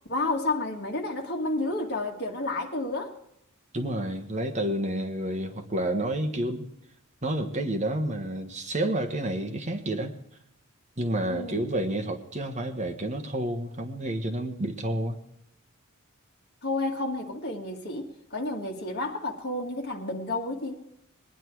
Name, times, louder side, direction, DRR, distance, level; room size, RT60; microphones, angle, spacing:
voice 1, 0.1-3.2 11.3-11.7 16.6-20.8, left 2 dB, 50° left, 1 dB, 2.0 m, -31 dB
voice 2, 3.7-6.7 7.2-10.1 11.0-15.2, right 1 dB, 35° right, 4 dB, 1.4 m, -29 dB
20.5 x 10.0 x 4.7 m, 0.80 s
head